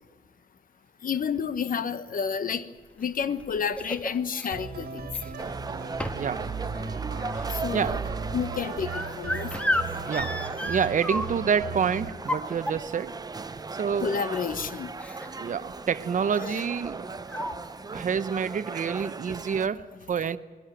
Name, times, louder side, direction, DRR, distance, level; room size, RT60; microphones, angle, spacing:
voice 1, 1.0-2.7 3.0-5.0 7.5-8.0 8.3-9.5 14.0-14.9, left 6 dB, 65° left, 1.1 m, -30 dB
sound 1, 3.0-4.5 5.1-5.6 6.0-6.4 6.7-11.6 12.1-13.1 14.0-14.1 14.4-14.6 15.0-15.4 15.7-15.9 16.8-16.9 17.3-17.5, left 1 dB, 10° left, 1.5 m, -33 dB
sound 2, 4.5-12.1, right 5 dB, 80° right, 2.0 m, -36 dB
sound 3, 5.4-19.7, right 4 dB, 25° right, 0.6 m, -38 dB
voice 2, 6.1-6.5 7.3-8.0 10.1-13.2 13.7-14.2 15.4-17.5 17.9-20.4, right 7 dB, 55° right, 0.9 m, -28 dB
21.5 x 17.0 x 9.1 m
wide cardioid pair, 110°, 16 cm